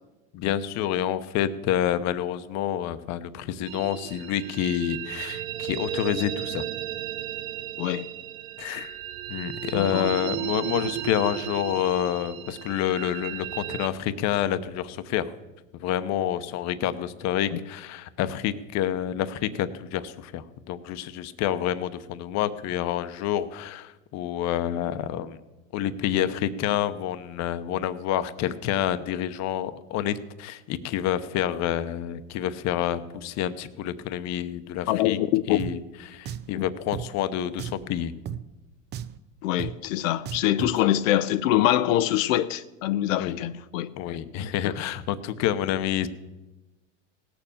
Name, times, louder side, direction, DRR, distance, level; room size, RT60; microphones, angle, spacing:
voice 1, 0.3-6.7 8.6-9.0 9.3-15.3 15.7-25.4 25.7-35.2 35.5-38.1 43.2-43.4 44.0-46.1, left 11 dB, 45° left, 0.9 m, -28 dB
sound 1, 3.6-13.9, right 12 dB, 85° right, 1.0 m, -34 dB
voice 2, 9.7-10.1 34.9-35.6 36.5-36.6 39.4-43.9 44.6-44.7, left 13 dB, 80° left, 0.6 m, -24 dB
Drum, 35.6-35.7 36.3-36.5 36.9-37.1 37.6-37.9 38.3-38.4 38.9-39.2 39.6-39.7 40.3-40.8, right 10 dB, 30° right, 0.5 m, -34 dB
17.5 x 7.0 x 7.2 m
supercardioid pair, 125°, 39 cm